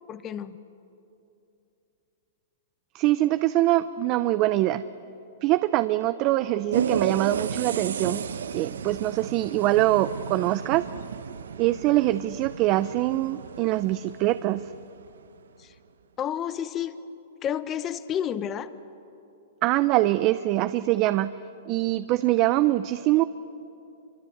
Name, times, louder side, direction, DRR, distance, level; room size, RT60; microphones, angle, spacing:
voice 1, 0.1-0.6 15.6-15.7 16.2-16.9 17.4-18.7, left 9 dB, 25° left, 13 dB, 0.9 m, -30 dB
voice 2, 2.9-4.8 5.4-8.2 8.5-10.9 11.6-14.7 19.6-21.3 21.7-23.2, right 16 dB, 35° right, 12 dB, 0.6 m, -23 dB
sound 1, 6.7-15.1, right 7 dB, 85° right, 0.9 m, -33 dB
27.0 x 25.0 x 8.1 m, 2.8 s
hypercardioid pair, 145°, 0 cm